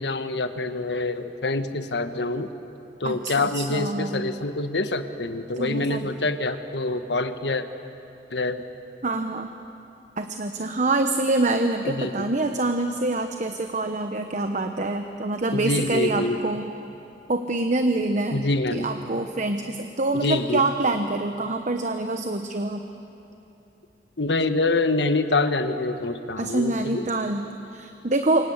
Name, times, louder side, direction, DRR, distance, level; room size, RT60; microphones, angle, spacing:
voice 1, 0.0-2.5 3.0-7.7 8.3-8.6 11.8-12.1 15.5-16.4 18.3-18.9 20.1-20.6 24.2-27.0, left 2 dB, 75° left, 9 dB, 1.4 m, -26 dB
voice 2, 3.0-4.2 5.6-6.0 9.0-9.5 10.2-16.7 17.3-18.4 18.7-22.9 26.4-28.5, right 2 dB, 40° right, 6 dB, 1.0 m, -26 dB
28.5 x 25.0 x 8.0 m, 2.9 s
head